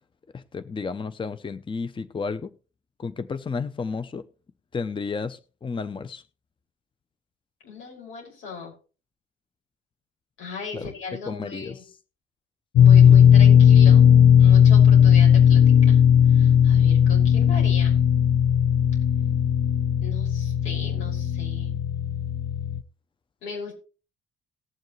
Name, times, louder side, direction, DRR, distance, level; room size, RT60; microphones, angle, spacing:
voice 1, 0.3-2.5 3.0-4.2 4.7-6.2 10.7-10.9 11.3-11.8 13.0-13.2 16.8-16.9, left 4 dB, 25° left, 13 dB, 0.7 m, -32 dB
voice 2, 7.6-8.7 10.4-11.8 12.8-14.1 14.4-16.0 16.3-18.0 20.0-21.7 23.4-23.7, left 5 dB, 90° left, -1 dB, 5.9 m, -38 dB
sound 1, 12.8-22.8, left 9 dB, 65° left, 0.7 m, -16 dB
19.0 x 7.1 x 3.2 m, 0.35 s
cardioid pair, 90°, 20 cm